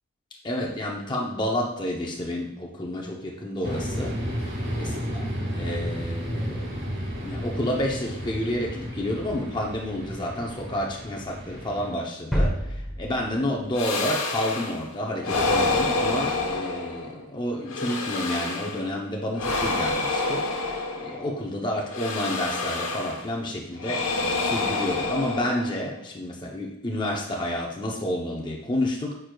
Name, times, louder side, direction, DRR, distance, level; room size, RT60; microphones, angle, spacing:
voice 1, 0.4-4.9 5.5-6.8 7.2-24.1 24.3-29.2, left 1 dB, 20° left, -1 dB, 0.6 m, -30 dB
sound 1, 3.6-11.9, equal, 55° right, 1.7 m, -32 dB
sound 2, 12.3-14.2 14.4-14.5, equal, ahead, 0.9 m, -28 dB
sound 3, 13.7-14.8 15.2-17.2 17.7-18.9 19.3-21.3 21.9-23.3 23.8-25.9, left 3 dB, 75° left, 0.9 m, -28 dB
9.3 x 4.5 x 2.2 m, 0.87 s
head